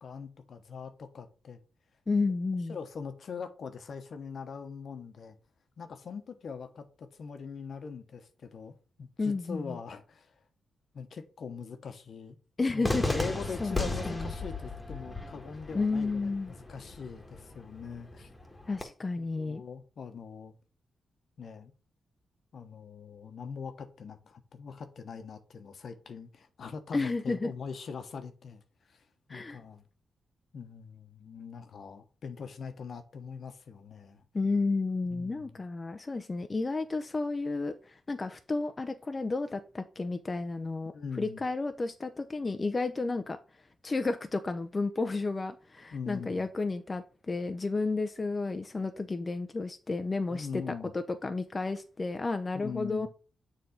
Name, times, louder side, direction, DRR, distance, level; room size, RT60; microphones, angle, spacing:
voice 1, 0.0-1.6 2.7-5.4 5.8-10.3 10.9-12.4 12.7-18.3 19.2-20.5 21.4-21.7 22.5-29.0 29.3-29.8 30.5-34.2 35.1-35.6 40.9-41.4 45.9-46.4 50.3-50.9 52.5-53.1, left 5 dB, 65° left, 1.0 m, -42 dB
voice 2, 2.1-2.8 9.2-9.8 12.6-13.3 13.6-14.3 15.7-16.5 18.7-19.6 26.9-27.5 29.3-29.6 34.3-40.9 41.2-43.4 43.8-53.1, left 3 dB, 35° left, 0.6 m, -32 dB
Cheering / Fireworks, 12.8-18.8, left 2 dB, 15° left, 1.5 m, -36 dB
6.9 x 3.4 x 5.0 m
cardioid pair, 70°, 0 cm